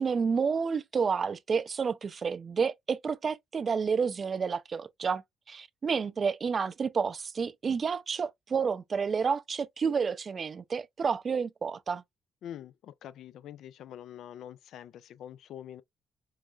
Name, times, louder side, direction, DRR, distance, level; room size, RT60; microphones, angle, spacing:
voice 1, 0.0-5.2 5.5-12.0, right 5 dB, 45° right, 0.4 m, -30 dB
voice 2, 12.4-15.8, left 10 dB, 75° left, 0.3 m, -45 dB
4.7 x 2.1 x 2.4 m
supercardioid pair, 75°, 0 cm